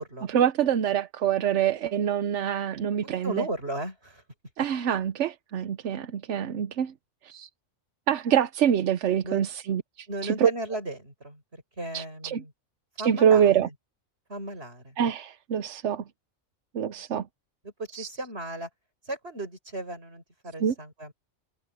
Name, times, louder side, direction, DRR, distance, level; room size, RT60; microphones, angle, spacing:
voice 1, 0.3-3.5 4.6-6.9 7.2-7.5 8.1-10.5 11.9-12.4 13.0-13.7 15.0-16.0 16.7-17.3 17.9-18.1 20.6-20.7, right 9 dB, 65° right, 1.0 m, -25 dB
voice 2, 3.0-4.2 6.4-6.5 9.2-9.4 10.1-11.4 11.8-12.5 13.0-13.6 14.3-15.0 16.9-17.0 17.8-18.7 19.1-21.1, right 1 dB, 50° right, 7.1 m, -35 dB
omnidirectional pair, 1.4 m